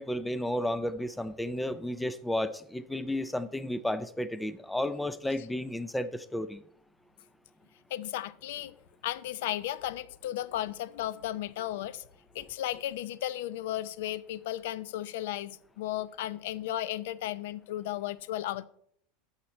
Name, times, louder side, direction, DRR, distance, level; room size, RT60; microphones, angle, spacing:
voice 1, 0.0-6.6, left 1 dB, 5° left, 0.4 m, -32 dB
voice 2, 7.9-8.7 9.0-12.1 12.3-18.7, left 13 dB, 75° left, 0.5 m, -35 dB
13.0 x 5.7 x 4.3 m
supercardioid pair, 165°, 0 cm